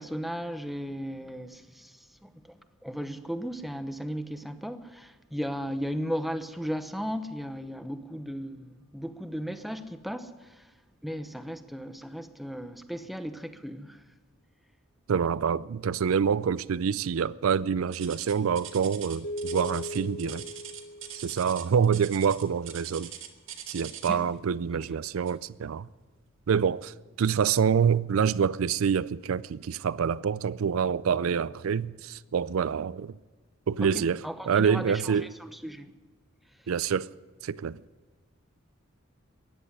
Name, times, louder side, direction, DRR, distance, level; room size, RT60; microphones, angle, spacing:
voice 1, 0.0-10.6 11.0-14.0 24.1-24.2 24.7-25.0 33.8-33.9 34.2-35.9, equal, ahead, 0.9 m, -36 dB
voice 2, 15.1-20.5 21.2-23.1 23.7-25.9 26.5-33.1 33.7-34.2 34.5-35.2 36.7-37.1 37.4-37.8, right 7 dB, 85° right, 0.4 m, -26 dB
sound 1, 17.9-24.3 25.3-25.5 26.1-26.2 26.9-27.0, right 10 dB, 70° right, 1.9 m, -42 dB
sound 2, 19.2-21.8, equal, 85° left, 1.2 m, -38 dB
14.5 x 10.0 x 9.7 m
head